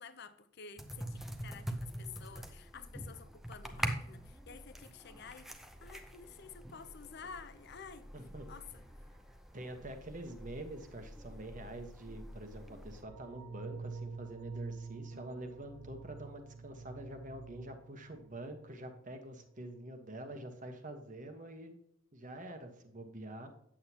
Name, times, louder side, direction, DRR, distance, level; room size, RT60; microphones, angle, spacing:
voice 1, 0.0-8.1 8.5-8.8, left 6 dB, 50° left, 11 dB, 0.6 m, -51 dB
sound 1, 0.8-13.0, equal, ahead, 0.7 m, -45 dB
voice 2, 8.1-8.5 9.5-21.7 22.1-23.5, right 1 dB, 35° right, 6 dB, 1.2 m, -46 dB
sound 2, 13.1-19.1 19.4-19.5, right 4 dB, 75° right, 0.4 m, -48 dB
8.6 x 8.0 x 2.9 m, 0.74 s
head